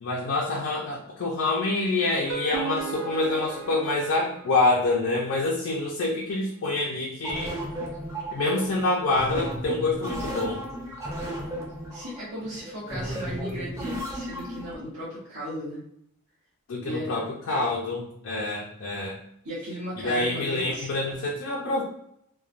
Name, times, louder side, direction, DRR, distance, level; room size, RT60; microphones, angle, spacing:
voice 1, 0.0-7.5 8.3-10.6 16.7-19.2 20.0-21.8, left 2 dB, 60° left, -2 dB, 0.4 m, -26 dB
sound 1, 2.1-5.2, right 6 dB, 60° right, 0.5 m, -36 dB
sound 2, 7.2-14.7, equal, 15° right, 0.6 m, -34 dB
voice 2, 11.9-15.8 16.8-17.2 19.4-20.9, equal, 85° right, -9 dB, 0.9 m, -36 dB
3.1 x 2.1 x 2.4 m, 0.74 s
head